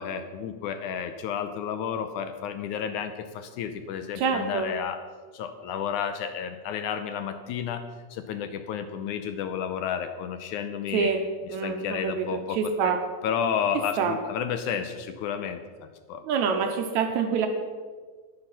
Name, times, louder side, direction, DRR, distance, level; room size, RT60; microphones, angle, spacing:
voice 1, 0.0-5.0 5.3-7.8 8.1-11.1 11.6-12.6 12.8-13.0 13.2-15.6 16.1-16.2, left 8 dB, 80° left, 9 dB, 2.0 m, -31 dB
voice 2, 4.2-4.7 10.9-13.0 14.0-14.2 16.2-17.5, right 6 dB, 75° right, 5 dB, 1.9 m, -26 dB
10.0 x 10.0 x 5.6 m, 1.5 s
omnidirectional pair, 3.8 m